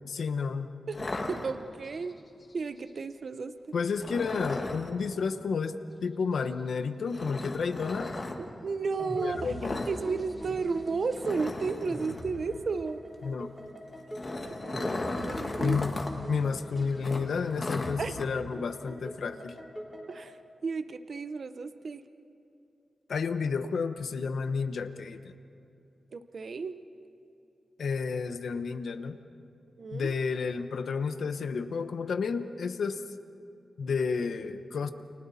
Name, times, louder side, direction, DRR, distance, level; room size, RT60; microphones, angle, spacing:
voice 1, 0.1-0.7 3.7-8.1 9.2-9.8 13.2-13.5 15.6-16.0 16.3-19.6 23.1-25.3 27.8-29.2 29.9-33.0 33.8-34.9, left 5 dB, 65° left, 9 dB, 1.0 m, -31 dB
sound 1, 0.9-2.0 4.0-4.9 7.1-8.3 9.6-10.0 10.2-10.4 10.7-10.8 11.2-12.3 13.9-16.1 16.4-16.5 17.0-18.2, left 2 dB, 30° left, 1.8 m, -36 dB
voice 2, 1.3-2.2 2.5-3.7 8.4-9.5 9.8-13.0 14.2-15.8 18.0-18.2 20.1-22.0 26.1-26.8 29.8-30.1, right 4 dB, 45° right, 10 dB, 0.7 m, -33 dB
sound 2, 9.0-20.3, equal, 5° right, 3.6 m, -43 dB
29.5 x 29.0 x 4.2 m, 2.7 s
wide cardioid pair, 175°, 0 cm